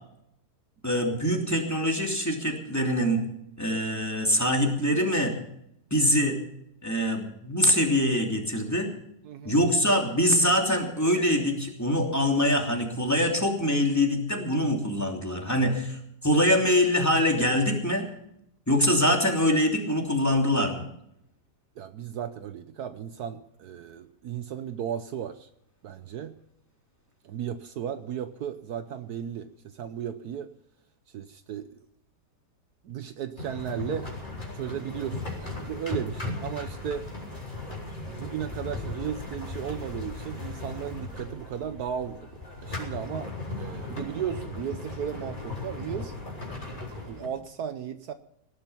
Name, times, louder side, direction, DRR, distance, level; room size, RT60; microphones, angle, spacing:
voice 1, 0.8-3.2 3.6-5.3 5.9-6.4 6.8-8.9 9.4-18.1 18.7-20.8, equal, 10° left, 1 dB, 2.9 m, -24 dB
voice 2, 9.2-9.6 21.8-25.5 25.8-26.3 27.2-30.5 31.1-31.8 32.8-34.1 34.5-37.0 38.0-46.1 47.0-48.1, right 9 dB, 70° right, 10 dB, 1.3 m, -35 dB
sound 1, 33.4-47.3, left 3 dB, 25° left, 4.4 m, -37 dB
18.5 x 11.5 x 5.7 m, 0.75 s
omnidirectional pair, 1.8 m